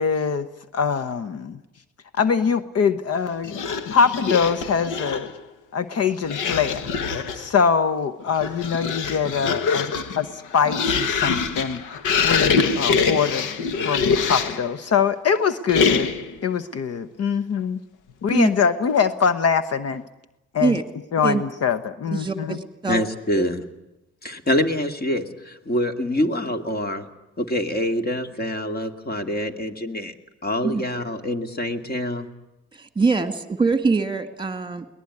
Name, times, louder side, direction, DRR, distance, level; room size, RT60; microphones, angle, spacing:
voice 1, 0.0-1.6 2.2-3.6 3.9-5.3 5.7-6.9 7.3-13.5 13.8-16.1 16.4-17.8 18.2-20.0 20.5-20.8 21.1-22.6, left 6 dB, 55° left, 13 dB, 1.0 m, -23 dB
sound 1, 3.4-5.4 6.2-7.5 8.2-14.7 15.7-16.4, left 5 dB, 90° left, 1.6 m, -24 dB
voice 2, 22.1-23.0 23.3-23.4 30.6-30.9 32.7-34.9, right 4 dB, 15° right, 9 dB, 2.1 m, -23 dB
voice 3, 22.9-23.6 24.2-27.1 27.4-30.1 30.4-32.3, left 1 dB, 30° left, 7 dB, 2.4 m, -25 dB
22.5 x 19.0 x 9.8 m, 0.95 s
cardioid pair, 90°, 30 cm